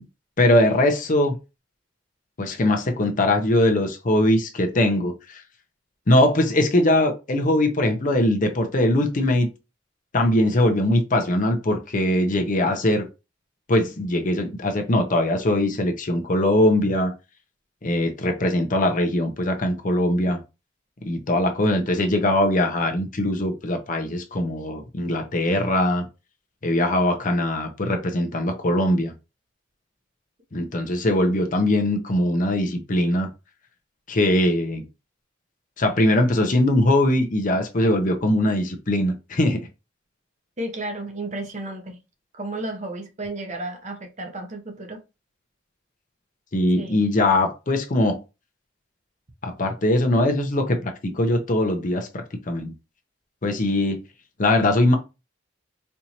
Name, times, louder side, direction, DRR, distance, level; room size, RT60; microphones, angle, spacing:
voice 1, 0.4-1.3 2.4-5.4 6.1-9.5 10.1-13.0 13.7-17.1 17.8-20.4 21.0-26.0 26.6-29.1 30.5-33.3 34.1-34.8 35.8-39.6 46.5-48.2 49.4-52.7 53.4-54.0 54.4-55.0, left 1 dB, 45° left, 0.7 m, -21 dB
voice 2, 40.6-42.0 42.3-45.0 46.8-47.0, right 2 dB, 40° right, 0.8 m, -33 dB
4.4 x 2.7 x 2.8 m
head